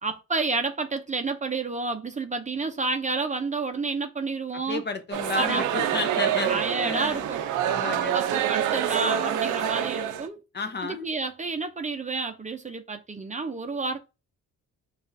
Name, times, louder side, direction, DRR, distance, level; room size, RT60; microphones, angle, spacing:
voice 1, 0.0-4.8 5.3-5.6 6.5-7.5 8.1-10.4 10.8-14.0, right 3 dB, 25° right, 0.6 m, -30 dB
voice 2, 4.5-7.3 7.7-8.2 10.5-11.1, left 4 dB, 35° left, 0.8 m, -32 dB
sound 1, 5.1-10.3, right 10 dB, 85° right, 0.6 m, -26 dB
5.1 x 2.5 x 2.7 m
cardioid pair, 90°, 30 cm